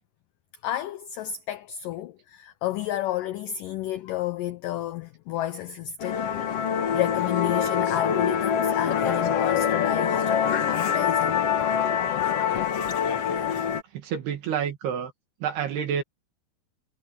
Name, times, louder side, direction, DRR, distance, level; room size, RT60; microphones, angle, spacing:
voice 1, 0.6-11.4, left 12 dB, 85° left, 1.9 m, -32 dB
Musical instrument, 6.0-13.8, left 8 dB, 60° left, 1.6 m, -25 dB
voice 2, 13.9-15.1 15.4-16.0, right 8 dB, 70° right, 3.8 m, -29 dB
omnidirectional pair, 4.8 m